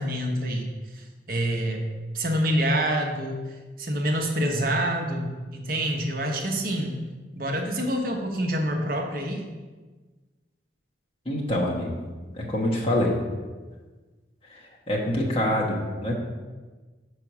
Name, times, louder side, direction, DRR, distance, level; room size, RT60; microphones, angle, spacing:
voice 1, 0.0-1.8 2.1-7.0 7.4-9.5, equal, 50° right, 2 dB, 0.9 m, -27 dB
voice 2, 11.2-12.1 12.3-13.2 14.5-16.2, left 1 dB, 30° left, -3 dB, 1.2 m, -26 dB
5.9 x 4.8 x 6.0 m, 1.3 s
head